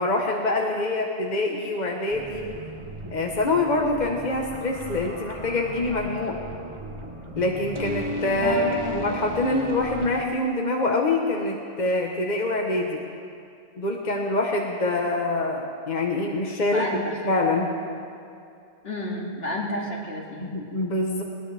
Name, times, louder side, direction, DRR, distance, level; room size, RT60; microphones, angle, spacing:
voice 1, 0.0-2.4 3.1-6.3 7.3-13.0 13.8-16.8 17.2-17.7 20.4-21.2, left 2 dB, 45° left, 0 dB, 1.2 m, -25 dB
sound 1, 2.1-10.2, right 1 dB, 30° right, 1.2 m, -36 dB
voice 2, 8.4-9.1 16.7-17.1 18.8-20.5, left 1 dB, 65° left, -3 dB, 2.7 m, -30 dB
20.0 x 19.5 x 3.4 m, 2.5 s
omnidirectional pair, 1.1 m